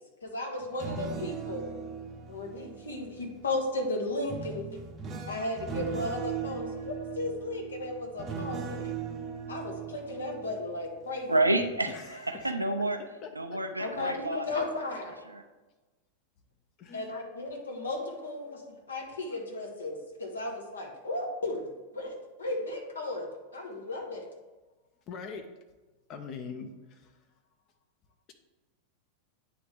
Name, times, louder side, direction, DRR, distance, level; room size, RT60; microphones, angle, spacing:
voice 1, 0.2-1.6 2.3-4.7 5.3-8.8 9.5-11.3 12.5-12.6 13.8-15.2 16.9-21.7 21.9-24.3, left 2 dB, 70° left, 1 dB, 1.2 m, -35 dB
sound 1, 0.6-3.5 4.3-11.2 11.6-11.9, right 6 dB, 25° right, 0.7 m, -39 dB
voice 2, 11.3-13.0 13.4-14.5 15.3-15.4, right 2 dB, 85° right, 6 dB, 0.5 m, -29 dB
voice 3, 11.9-12.5 13.2-13.6 16.8-17.1 25.1-25.5 26.1-27.1, left 5 dB, 35° left, 6 dB, 0.6 m, -42 dB
9.2 x 3.3 x 3.4 m, 1.2 s
figure-of-eight pair, 90°, 0 cm